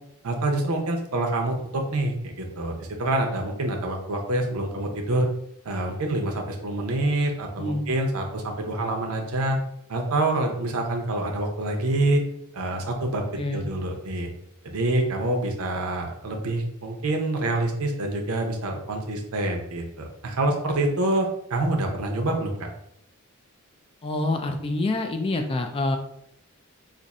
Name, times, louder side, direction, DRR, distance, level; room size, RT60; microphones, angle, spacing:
voice 1, 0.2-5.3 5.6-9.6 9.9-12.2 12.5-13.2 13.5-14.3 14.6-22.7, right 2 dB, 75° right, 2 dB, 0.7 m, -26 dB
voice 2, 7.6-7.9 13.4-13.6 24.0-26.0, left 2 dB, 25° left, 5 dB, 0.3 m, -26 dB
2.6 x 2.5 x 4.1 m, 0.74 s
head